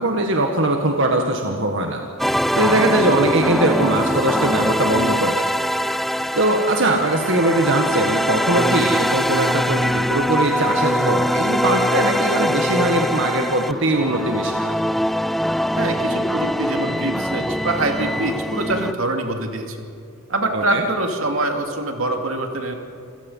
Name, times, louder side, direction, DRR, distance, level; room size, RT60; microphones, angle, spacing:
voice 1, 0.0-2.0 2.6-5.5 6.3-14.8 20.5-20.9, right 1 dB, 65° right, 2 dB, 1.8 m, -21 dB
sound 1, 2.2-18.9, equal, ahead, 0.4 m, -22 dB
voice 2, 2.6-2.9 15.8-19.8 20.3-22.7, right 2 dB, 85° right, 4 dB, 2.5 m, -24 dB
28.0 x 16.5 x 5.7 m, 2.7 s
head